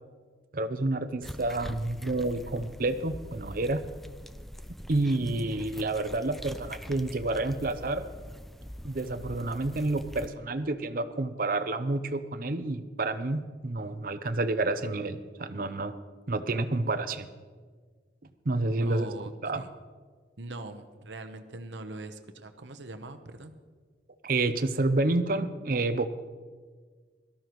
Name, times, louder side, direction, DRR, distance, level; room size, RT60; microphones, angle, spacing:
voice 1, 0.5-3.9 4.9-8.1 8.8-16.0 16.3-17.3 18.5-19.1 19.4-19.6 24.2-26.1, right 2 dB, 50° right, 10 dB, 0.7 m, -29 dB
sound 1, 1.2-10.3, equal, ahead, 0.4 m, -44 dB
voice 2, 18.8-19.7 20.4-23.5, right 2 dB, 80° right, 7 dB, 0.9 m, -42 dB
18.0 x 13.0 x 3.1 m, 1.5 s
head